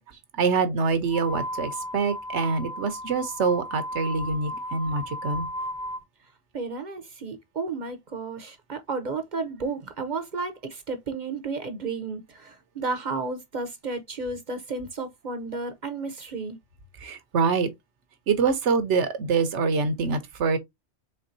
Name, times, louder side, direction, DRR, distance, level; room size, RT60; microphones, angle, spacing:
voice 1, 0.4-5.5 17.0-17.7 18.3-20.6, right 5 dB, 75° right, 1.2 m, -25 dB
sound 1, 1.1-6.0, equal, 45° left, 1.1 m, -35 dB
voice 2, 6.5-16.6, right 3 dB, 45° right, 0.8 m, -32 dB
4.5 x 3.6 x 2.6 m
omnidirectional pair, 1.2 m